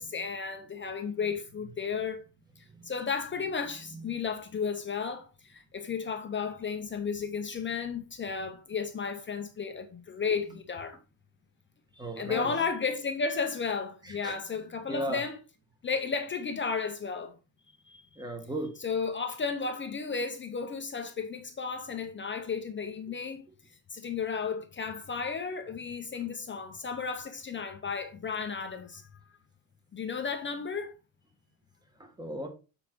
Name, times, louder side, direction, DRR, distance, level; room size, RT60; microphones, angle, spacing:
voice 1, 0.0-2.2 2.6-11.0 12.2-15.4 15.8-17.3 17.9-18.0 18.8-23.5 23.9-29.1 29.9-30.9, left 5 dB, 25° left, 0.7 m, -33 dB
voice 2, 12.0-12.5 14.2-14.4 14.9-15.2 18.2-18.7 32.0-32.5, right 1 dB, 10° right, 1.3 m, -35 dB
7.2 x 4.9 x 4.4 m
cardioid pair, 170°, 43 cm